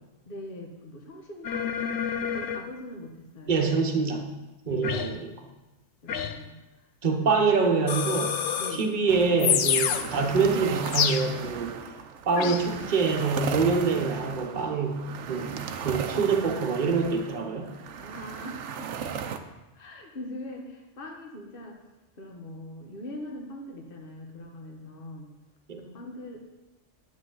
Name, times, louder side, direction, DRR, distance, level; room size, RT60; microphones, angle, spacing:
voice 1, 0.2-1.7 2.2-3.6 4.7-5.1 6.0-6.9 7.2-7.3 8.6-8.9 18.0-18.9 19.7-21.8 22.2-25.3 25.7-26.4, left 1 dB, 45° left, 2 dB, 1.3 m, -41 dB
sound 1, 1.4-2.7 4.8-5.2 6.1-6.4 7.9-8.9 9.4-10.1 10.8-11.3 12.4-12.7, left 8 dB, 85° left, 1.0 m, -28 dB
voice 2, 3.5-4.3 4.7-5.3 7.0-8.4 8.7-11.8 12.3-17.7 25.7-25.8, right 4 dB, 40° right, 2 dB, 1.1 m, -25 dB
sound 2, 9.1-19.4, right 7 dB, 70° right, 1.0 m, -36 dB
10.0 x 7.5 x 3.9 m, 1.1 s
omnidirectional pair, 1.3 m